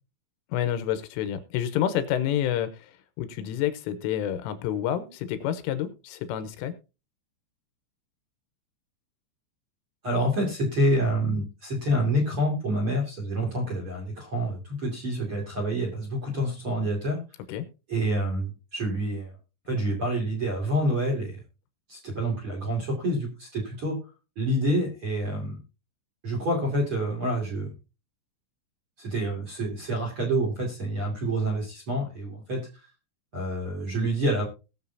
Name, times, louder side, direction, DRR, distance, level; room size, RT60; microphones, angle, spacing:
voice 1, 0.5-2.9 3.2-6.8 17.5-17.7, left 10 dB, 80° left, 10 dB, 3.3 m, -28 dB
voice 2, 10.0-17.2 17.9-19.3 19.7-21.4 21.9-24.0 24.4-25.6 26.2-27.7 29.0-32.7 33.3-34.4, right 1 dB, 35° right, 2 dB, 2.3 m, -27 dB
20.0 x 7.0 x 2.8 m, 0.30 s
omnidirectional pair, 6.0 m